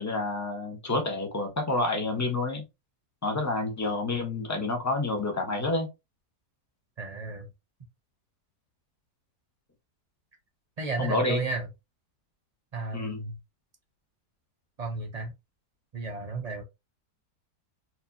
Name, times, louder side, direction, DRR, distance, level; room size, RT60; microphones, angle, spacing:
voice 1, 0.0-2.6 3.2-5.9 11.0-11.4 12.9-13.2, left 2 dB, 15° left, 0.7 m, -29 dB
voice 2, 7.0-7.5 10.8-11.7 12.7-13.4 14.8-15.3 15.9-16.6, right 3 dB, 55° right, 0.4 m, -33 dB
4.5 x 2.8 x 2.6 m
omnidirectional pair, 1.7 m